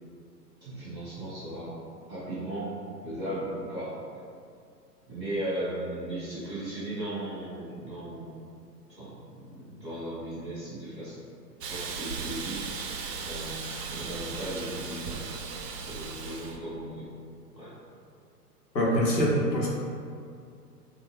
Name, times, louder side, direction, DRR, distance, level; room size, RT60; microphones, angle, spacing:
voice 1, 0.6-1.7 2.1-2.7 3.0-3.9 5.1-8.4 9.0-11.2 11.6-12.7 13.3-13.6 13.9-15.3 15.8-17.1 17.6-17.7, right 1 dB, 5° left, -21 dB, 0.4 m, -36 dB
Hiss, 11.6-16.6, right 5 dB, 70° right, 0.5 m, -37 dB
voice 2, 18.7-19.7, equal, 90° left, -4 dB, 0.9 m, -24 dB
2.5 x 2.2 x 3.4 m, 2.3 s
figure-of-eight pair, 120°, 49 cm